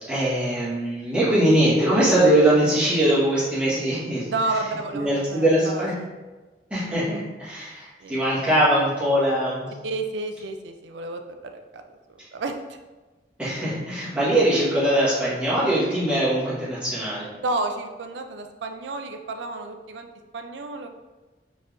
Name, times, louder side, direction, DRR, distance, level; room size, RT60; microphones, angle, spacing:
voice 1, 0.1-4.3 4.9-5.9 6.7-9.7 13.4-17.3, right 1 dB, 5° right, -10 dB, 1.4 m, -21 dB
voice 2, 4.3-5.5 5.7-5.9 8.0-8.2 9.8-11.8 12.3-12.6 17.4-20.1 20.3-20.9, right 2 dB, 90° right, 6 dB, 0.4 m, -30 dB
4.2 x 3.3 x 2.6 m, 1.2 s
head